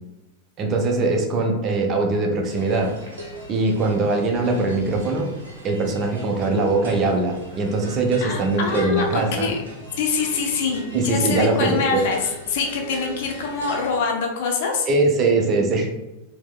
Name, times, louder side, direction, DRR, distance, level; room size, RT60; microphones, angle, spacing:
voice 1, 0.6-2.9 3.5-5.3 5.6-9.5 10.9-12.0 14.9-15.9, right 3 dB, 30° right, 2 dB, 0.5 m, -21 dB
sound 1, 2.5-14.0, right 1 dB, 65° right, 0.7 m, -40 dB
voice 2, 8.2-9.6 10.0-12.2 12.5-14.9, left 4 dB, 50° left, 2 dB, 0.5 m, -24 dB
4.4 x 2.0 x 2.3 m, 1.0 s
figure-of-eight pair, 90°, 0 cm